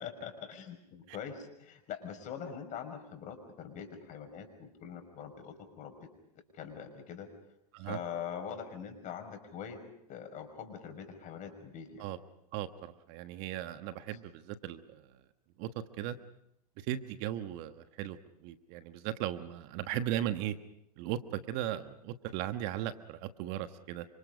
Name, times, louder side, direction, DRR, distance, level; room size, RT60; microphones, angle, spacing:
voice 1, 0.0-5.9 6.5-7.3 7.9-9.8 10.1-12.1, left 7 dB, 40° left, 6 dB, 5.9 m, -43 dB
voice 2, 12.5-15.0 15.6-15.7 16.0-16.2 16.8-18.2 18.4-20.6 21.0-21.2 21.5-24.1, right 12 dB, 50° right, 10 dB, 1.4 m, -37 dB
28.5 x 26.0 x 5.2 m, 0.78 s
hypercardioid pair, 105°, 21 cm